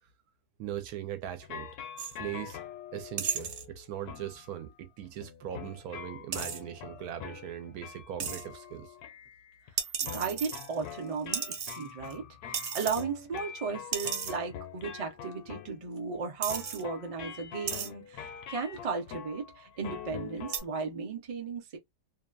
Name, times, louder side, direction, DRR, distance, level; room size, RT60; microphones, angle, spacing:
voice 1, 0.6-1.7 2.2-2.6 2.9-9.0, right 11 dB, 85° right, 1.1 m, -40 dB
sound 1, 1.4-9.8 10.0-20.6, left 8 dB, 80° left, 1.1 m, -45 dB
sound 2, 2.0-2.2 3.2-3.7 6.3-6.6 8.2-8.4 9.8-10.9 11.3-12.1 12.5-13.0 13.4-13.5 13.9-14.4 15.3-15.4 16.0-16.1 16.4-16.8 17.7-17.9 18.8-19.1 20.5-20.6, right 7 dB, 60° right, 0.9 m, -34 dB
voice 2, 10.0-21.8, right 5 dB, 40° right, 0.5 m, -35 dB
2.8 x 2.2 x 2.4 m
omnidirectional pair, 1.6 m